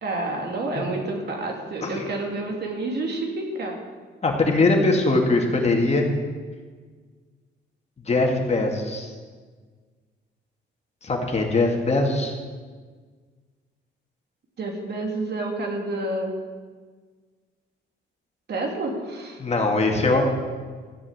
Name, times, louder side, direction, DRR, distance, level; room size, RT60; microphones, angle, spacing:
voice 1, 0.0-3.8 14.6-16.3 18.5-19.4, right 2 dB, 55° right, 1 dB, 2.7 m, -29 dB
voice 2, 4.2-6.1 8.1-9.1 11.0-12.4 19.4-20.2, left 2 dB, 35° left, 1 dB, 2.3 m, -21 dB
13.5 x 7.4 x 7.4 m, 1.5 s
cardioid pair, 90°, 20 cm